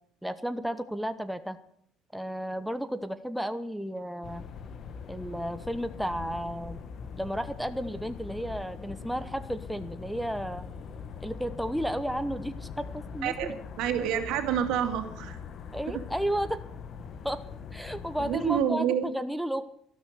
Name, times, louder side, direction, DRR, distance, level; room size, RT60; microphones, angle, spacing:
voice 1, 0.2-1.6 2.1-4.4 5.1-6.8 7.2-10.6 11.2-13.6 15.7-16.6 17.2-17.4 17.7-19.6, equal, ahead, 10 dB, 0.9 m, -33 dB
sound 1, 4.2-18.6, left 6 dB, 45° left, 1.4 m, -42 dB
voice 2, 13.8-15.4 18.2-19.1, right 9 dB, 75° right, 6 dB, 2.4 m, -28 dB
12.5 x 12.5 x 6.7 m, 0.65 s
cardioid pair, 115°, 0 cm